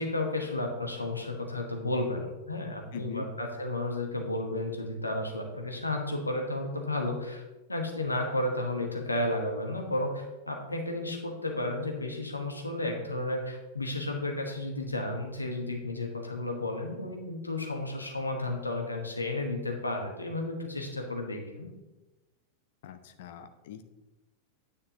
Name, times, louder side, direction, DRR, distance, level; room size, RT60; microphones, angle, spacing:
voice 1, 0.0-7.4 7.7-21.7, left 2 dB, 80° left, 2 dB, 1.3 m, -32 dB
voice 2, 2.9-3.3 22.8-23.9, left 8 dB, 55° left, 9 dB, 0.7 m, -42 dB
9.5 x 8.4 x 2.9 m, 1.1 s
figure-of-eight pair, 90°, 0 cm